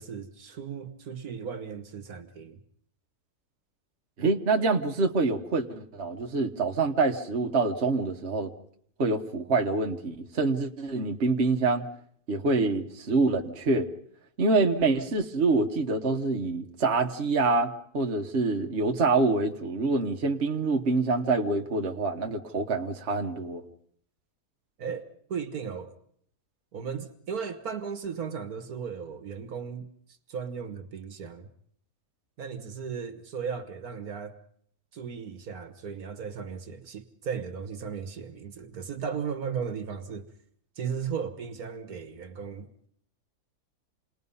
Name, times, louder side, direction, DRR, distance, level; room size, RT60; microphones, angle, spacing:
voice 1, 0.0-2.6 24.8-25.9 26.7-29.9 30.3-31.5 32.4-34.4 34.9-40.3 40.8-42.9, right 6 dB, 65° right, 1.7 m, -36 dB
voice 2, 4.2-8.5 9.0-11.9 12.3-13.9 14.4-23.6, right 3 dB, 45° right, 1.4 m, -26 dB
28.0 x 20.0 x 5.5 m
omnidirectional pair, 1.7 m